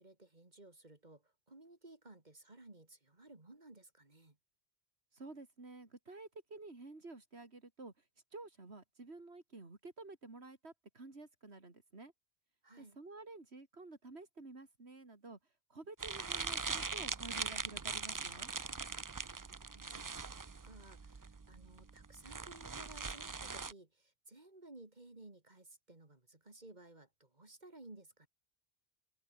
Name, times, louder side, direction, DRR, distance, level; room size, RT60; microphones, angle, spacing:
voice 1, 0.0-4.4 12.6-13.0 19.2-28.3, right 2 dB, 45° right, 3.0 m, -57 dB
voice 2, 5.1-7.9 8.3-12.1 12.8-15.4 15.7-18.5, right 3 dB, 85° right, 3.6 m, -51 dB
sound 1, 16.0-23.7, right 4 dB, 25° right, 0.4 m, -41 dB
omnidirectional pair, 1.1 m